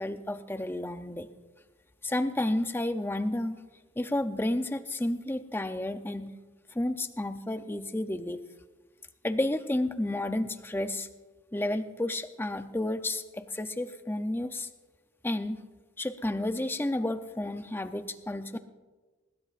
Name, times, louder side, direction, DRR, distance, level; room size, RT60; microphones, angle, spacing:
voice 1, 0.0-1.3 2.0-3.6 4.0-6.3 6.7-8.4 9.2-11.1 11.5-14.7 15.2-15.6 16.0-18.6, left 1 dB, 10° left, 9 dB, 0.6 m, -31 dB
21.5 x 20.5 x 2.5 m, 1.3 s
head